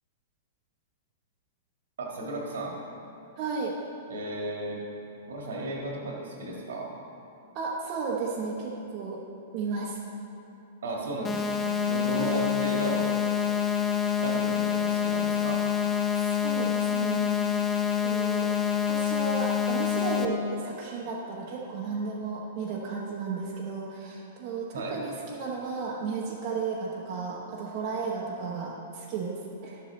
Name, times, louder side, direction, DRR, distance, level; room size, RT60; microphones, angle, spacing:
voice 1, 2.0-2.8 4.1-4.8 5.2-6.9 10.8-11.6 11.9-13.2 14.1-15.7 24.7-25.0, right 1 dB, 75° right, -1 dB, 1.8 m, -34 dB
voice 2, 3.4-3.7 7.5-9.2 9.5-10.0 12.1-12.5 16.1-17.3 18.0-18.5 18.9-29.8, right 4 dB, 45° right, -4 dB, 1.0 m, -34 dB
sound 1, 11.2-20.2, left 8 dB, 25° left, 0.7 m, -27 dB
11.5 x 7.3 x 3.1 m, 2.9 s
hypercardioid pair, 110°, 0 cm